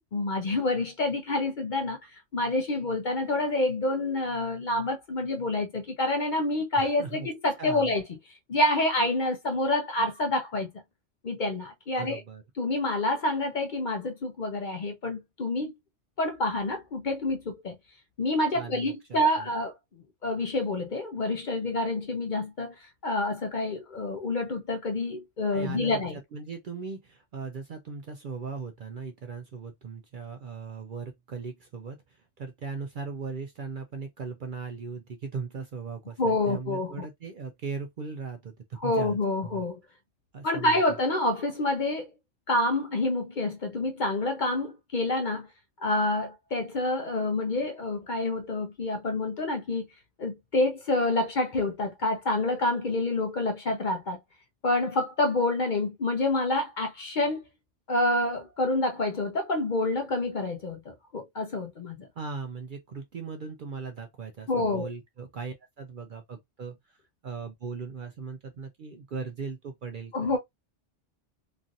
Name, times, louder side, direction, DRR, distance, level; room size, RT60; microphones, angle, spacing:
voice 1, 0.1-8.0 8.5-10.7 11.2-12.2 12.6-15.7 16.2-17.8 18.2-26.2 36.2-37.1 38.8-39.8 40.4-42.1 42.5-45.5 45.8-49.9 50.2-54.2 54.6-57.4 57.9-62.1 64.5-64.9 70.1-70.4, left 2 dB, 50° left, 0.6 m, -28 dB
voice 2, 6.8-7.3 7.6-7.9 11.9-12.4 18.5-19.5 25.5-26.0 26.3-39.2 39.4-39.6 40.3-40.8 62.2-67.0 67.2-70.4, right 5 dB, 60° right, 0.6 m, -38 dB
3.1 x 2.5 x 2.5 m
omnidirectional pair, 1.2 m